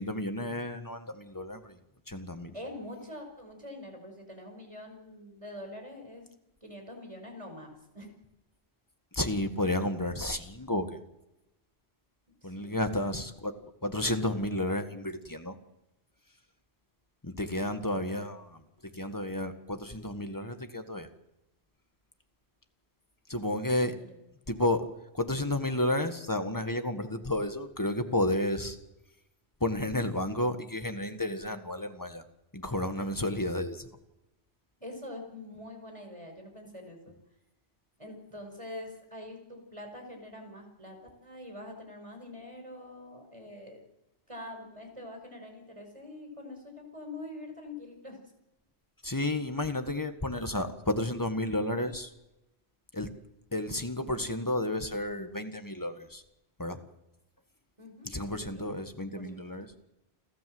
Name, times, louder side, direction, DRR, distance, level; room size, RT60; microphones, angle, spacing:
voice 1, 0.0-1.8 2.1-2.5 9.1-11.0 12.4-13.5 13.8-15.5 17.2-21.1 23.3-24.0 24.5-24.9 25.1-28.8 29.6-32.2 32.5-33.9 49.0-52.1 52.9-53.1 53.5-56.2 56.6-56.8 58.0-59.7, left 1 dB, 20° left, 7 dB, 1.6 m, -31 dB
voice 2, 2.5-6.3 6.6-8.1 12.4-13.1 17.9-18.2 23.8-24.2 34.8-37.2 38.0-43.8 44.3-48.2 57.8-58.7 59.1-59.5, left 1 dB, 30° right, 4 dB, 5.7 m, -45 dB
30.0 x 13.5 x 7.9 m, 0.93 s
omnidirectional pair, 1.1 m